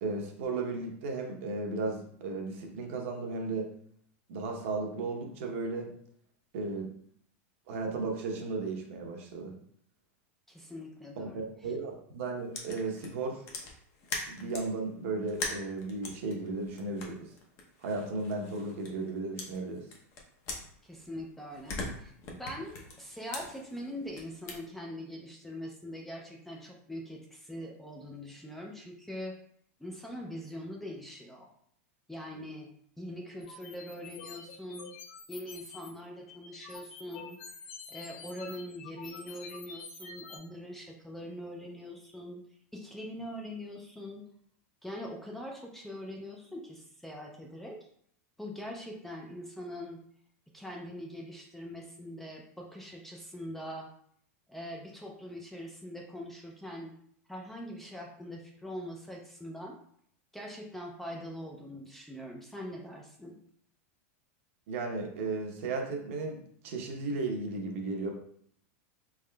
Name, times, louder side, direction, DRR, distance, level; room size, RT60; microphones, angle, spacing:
voice 1, 0.0-3.7 4.3-5.9 6.5-6.9 7.7-9.5 11.2-13.4 14.3-17.3 17.8-19.9 64.7-66.4 66.6-68.1, right 3 dB, 65° right, 2 dB, 0.8 m, -35 dB
voice 2, 10.5-11.4 20.8-29.4 29.8-31.5 32.1-32.7 33.0-34.9 35.3-37.4 37.9-42.4 42.7-44.2 44.8-47.8 48.4-50.0 50.5-53.9 54.5-56.9 57.3-59.8 60.3-63.4, equal, 5° left, -1 dB, 0.4 m, -42 dB
sound 1, 12.5-14.7 15.3-19.1 19.4-21.2 21.5-24.6, left 3 dB, 35° left, 0.7 m, -42 dB
sound 2, 33.4-35.9 36.3-40.4, left 5 dB, 60° left, 0.9 m, -47 dB
3.6 x 3.5 x 2.2 m, 0.64 s
supercardioid pair, 155°, 8 cm